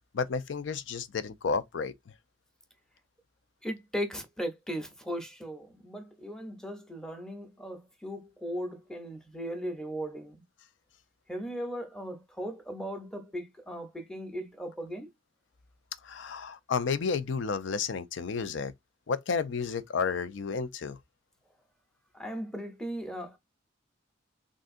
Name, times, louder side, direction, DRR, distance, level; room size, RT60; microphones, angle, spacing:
voice 1, 0.1-1.9 16.0-18.7 19.1-21.0, left 5 dB, 70° left, 0.5 m, -31 dB
voice 2, 3.6-10.4 11.3-15.1 22.1-23.4, equal, 5° left, 0.7 m, -37 dB
3.7 x 2.5 x 2.5 m
head